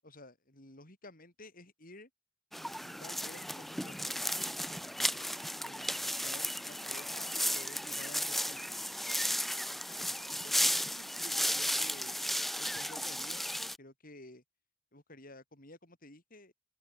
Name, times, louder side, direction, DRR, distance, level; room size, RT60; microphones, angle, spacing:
voice 1, 0.0-2.1 2.6-4.3 5.0-8.8 9.9-12.2 12.6-13.4 13.8-14.4 14.9-16.5, left 2 dB, 45° left, 8.0 m, -53 dB
sound 1, 2.5-13.8, equal, ahead, 2.9 m, -34 dB
open air
head